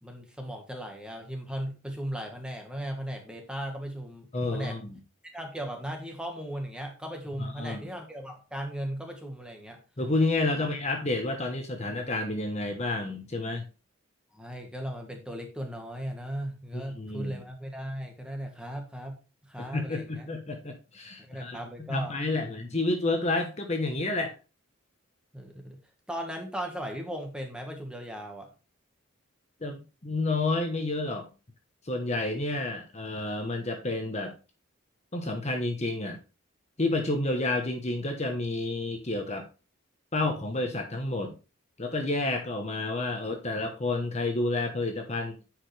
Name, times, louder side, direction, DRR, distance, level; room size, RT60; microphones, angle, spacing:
voice 1, 0.0-4.8 5.2-9.8 10.5-10.6 14.3-19.2 19.4-20.3 21.2-22.5 25.3-25.8 26.1-28.5, equal, 5° right, 2 dB, 1.4 m, -37 dB
voice 2, 4.3-5.0 7.4-7.8 10.0-13.6 16.7-17.4 19.6-21.6 21.9-24.3 29.6-31.3 31.8-34.3 35.1-36.2 36.8-39.5 40.1-41.3 41.8-45.3, left 2 dB, 30° left, 4 dB, 1.1 m, -30 dB
9.7 x 5.0 x 3.3 m, 0.31 s
head